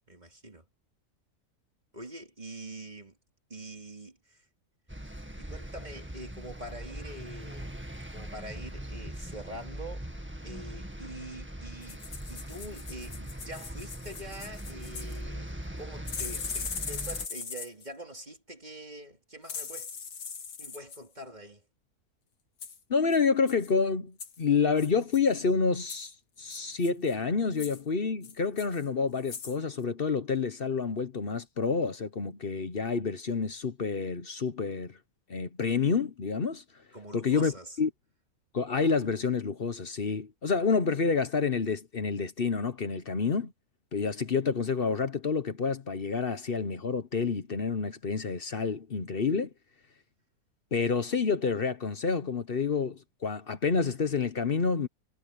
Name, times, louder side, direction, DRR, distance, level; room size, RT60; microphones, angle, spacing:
voice 1, 0.1-0.7 1.9-3.2 3.5-4.5 5.4-7.8 8.1-10.1 10.4-15.5 15.8-19.9 20.6-21.6 36.9-37.8, right 1 dB, 30° right, 3.5 m, -44 dB
sound 1, 4.9-17.3, right 1 dB, 10° right, 1.8 m, -41 dB
sound 2, 11.8-15.2 16.1-17.9 19.4-21.0 22.6-22.8 23.1-23.2 23.5-23.7 24.2-24.4 24.8-25.4 25.9-26.1 26.5-27.1 27.5-27.8 28.2-28.9 29.2-29.6 29.8-29.9, left 6 dB, 85° left, 2.2 m, -40 dB
voice 2, 22.9-35.0 35.3-36.6 37.1-37.9 38.5-43.5 43.9-49.5 50.7-54.9, left 5 dB, 45° left, 1.1 m, -28 dB
omnidirectional pair, 1.6 m